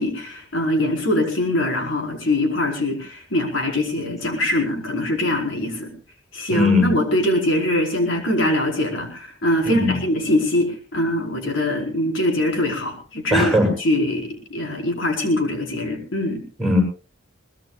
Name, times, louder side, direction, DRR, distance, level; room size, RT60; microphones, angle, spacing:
voice 1, 0.0-5.9 6.3-16.4, left 1 dB, 75° left, 1 dB, 4.8 m, -23 dB
voice 2, 6.5-6.9 9.6-9.9 13.3-13.7 16.6-16.8, left 2 dB, ahead, 0 dB, 7.9 m, -18 dB
23.0 x 20.5 x 2.5 m, 0.36 s
head